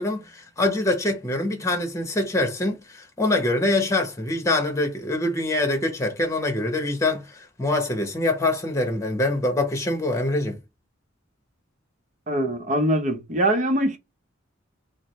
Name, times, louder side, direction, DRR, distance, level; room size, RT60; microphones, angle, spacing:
voice 1, 0.0-10.6, left 2 dB, 15° left, 1.1 m, -24 dB
voice 2, 12.3-14.0, right 1 dB, 40° right, 0.9 m, -23 dB
4.7 x 2.2 x 3.2 m
head